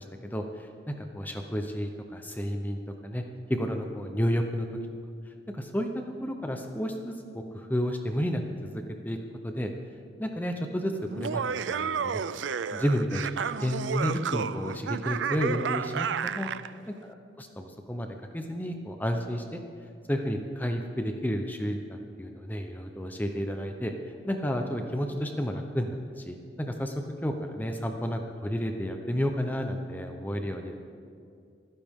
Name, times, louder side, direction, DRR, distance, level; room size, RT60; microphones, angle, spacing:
voice 1, 0.0-3.2 3.5-4.7 5.5-5.9 6.2-9.2 9.4-9.7 10.2-12.4 12.7-13.2 13.6-16.5 17.0-19.6 20.1-23.9 24.2-26.9 27.2-30.7, equal, 10° left, 4 dB, 0.8 m, -31 dB
Laughter, 11.1-16.7, right 6 dB, 80° right, 0.4 m, -31 dB
28.0 x 10.0 x 3.7 m, 2.4 s
head